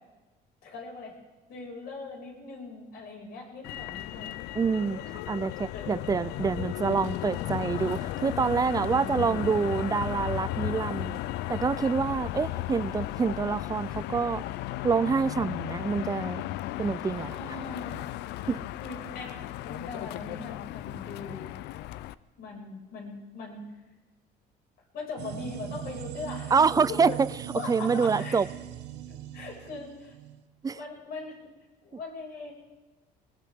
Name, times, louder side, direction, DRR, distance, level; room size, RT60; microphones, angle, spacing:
voice 1, 0.6-1.2 1.5-4.6 5.7-6.1 8.9-9.6 17.3-18.0 18.8-19.4 19.6-21.5 22.4-23.7 24.9-27.2 27.5-28.4 29.1-30.1 30.7-31.3 31.8-32.5, left 3 dB, 70° left, -2 dB, 6.1 m, -40 dB
Motor vehicle (road), 3.6-22.1, left 15 dB, 85° left, 0.5 m, -35 dB
voice 2, 4.6-11.2 11.5-14.4 14.8-16.4 16.8-17.4 18.5-18.7 26.5-27.1 27.7-28.5 30.6-30.8, right 5 dB, 20° right, 18 dB, 0.4 m, -27 dB
sound 1, 25.2-30.4, right 11 dB, 80° right, 1.0 m, -40 dB
20.5 x 19.0 x 3.7 m, 1.1 s
cardioid pair, 110°, 17 cm